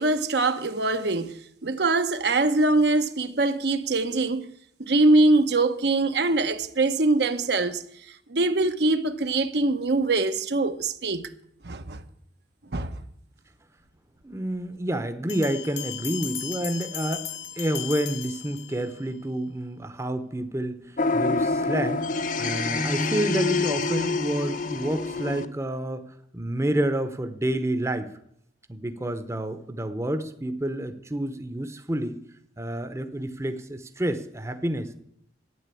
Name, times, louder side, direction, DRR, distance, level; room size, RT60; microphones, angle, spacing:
voice 1, 0.0-4.5 4.8-7.8 8.1-11.3 11.6-12.0 12.7-13.0, right 2 dB, 65° right, 0.9 m, -23 dB
voice 2, 14.2-17.3 17.6-22.1 22.4-26.1 26.3-28.1 28.7-32.2 32.6-34.9, right 1 dB, 15° right, 0.8 m, -29 dB
sound 1, 15.3-19.1, left 11 dB, 75° left, 1.3 m, -36 dB
sound 2, 21.0-25.5, left 3 dB, 45° left, 0.8 m, -26 dB
12.5 x 9.3 x 8.4 m
head